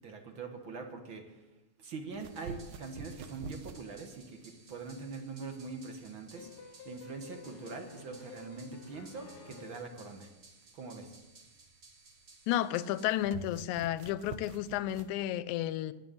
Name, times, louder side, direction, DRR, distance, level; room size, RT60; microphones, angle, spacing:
voice 1, 0.0-1.5 1.8-10.3 10.7-11.2, right 4 dB, 50° right, 4 dB, 1.9 m, -43 dB
sound 1, 2.1-15.2, right 5 dB, 90° right, 2.4 m, -50 dB
sound 2, 2.3-13.1, right 3 dB, 30° right, 2.3 m, -59 dB
sound 3, 6.4-10.0, left 6 dB, 55° left, 1.1 m, -51 dB
voice 2, 12.5-15.9, left 12 dB, 80° left, 15 dB, 2.0 m, -32 dB
11.5 x 9.6 x 9.3 m, 1.1 s
omnidirectional pair, 3.5 m